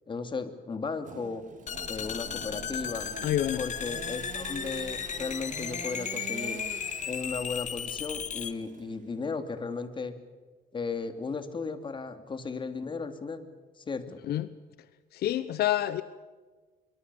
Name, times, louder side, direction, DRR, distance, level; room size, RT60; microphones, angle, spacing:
voice 1, 0.1-1.4 1.9-3.1 3.6-6.6 7.1-10.2 10.7-13.5 13.8-14.2, left 4 dB, 30° left, 9 dB, 2.6 m, -35 dB
Engine / Sawing, 1.0-9.3, right 6 dB, 50° right, 2.6 m, -45 dB
sound 1, 1.7-8.5, left 8 dB, 45° left, 1.6 m, -35 dB
voice 2, 3.2-3.6 14.3-14.5 15.1-16.0, left 12 dB, 70° left, 15 dB, 0.9 m, -27 dB
24.5 x 23.5 x 7.0 m, 1.4 s
cardioid pair, 110°, 17 cm